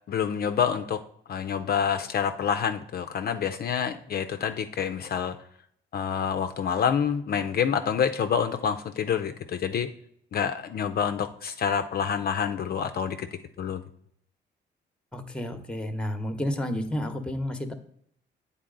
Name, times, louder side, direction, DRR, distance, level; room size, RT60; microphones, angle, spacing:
voice 1, 0.1-1.0 1.3-5.4 5.9-9.9 10.3-13.3 13.6-13.8, left 7 dB, 50° left, 8 dB, 0.5 m, -27 dB
voice 2, 15.1-17.7, left 1 dB, 5° left, 8 dB, 0.9 m, -31 dB
8.4 x 4.0 x 3.8 m, 0.68 s
cardioid pair, 90°, 20 cm